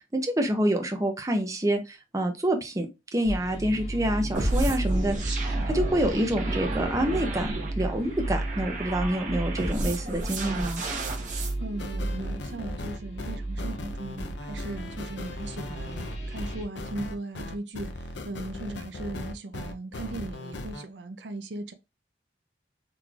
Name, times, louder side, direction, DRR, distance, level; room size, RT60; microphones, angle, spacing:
voice 1, 0.0-2.9 3.1-10.8, right 1 dB, 20° right, 0.6 m, -27 dB
sound 1, 3.2-16.7, right 1 dB, 40° left, 1.2 m, -33 dB
sound 2, 4.3-11.5, right 2 dB, 45° right, 1.0 m, -33 dB
voice 2, 11.6-21.7, right 2 dB, 75° right, 0.5 m, -38 dB
sound 3, 11.8-20.8, left 2 dB, 75° left, 0.5 m, -38 dB
3.9 x 3.0 x 2.3 m
head